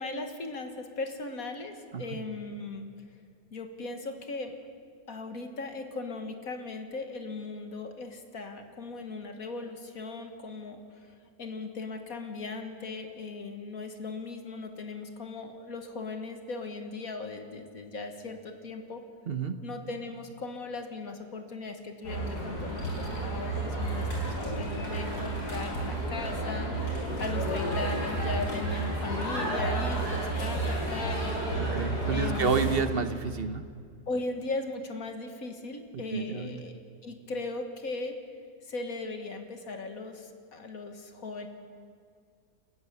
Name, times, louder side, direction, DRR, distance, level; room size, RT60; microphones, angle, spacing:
voice 1, 0.0-2.9 3.5-4.5 5.1-19.0 19.6-26.7 27.2-31.4 32.1-32.8 34.1-38.1 38.6-41.5, left 3 dB, 60° left, 6 dB, 2.0 m, -38 dB
voice 2, 19.3-19.6 31.6-33.6 35.9-36.6, right 5 dB, 45° right, 10 dB, 1.0 m, -30 dB
sound 1, 22.0-32.8, right 2 dB, 80° left, 5.3 m, -31 dB
28.5 x 15.5 x 6.8 m, 2.2 s
omnidirectional pair, 1.7 m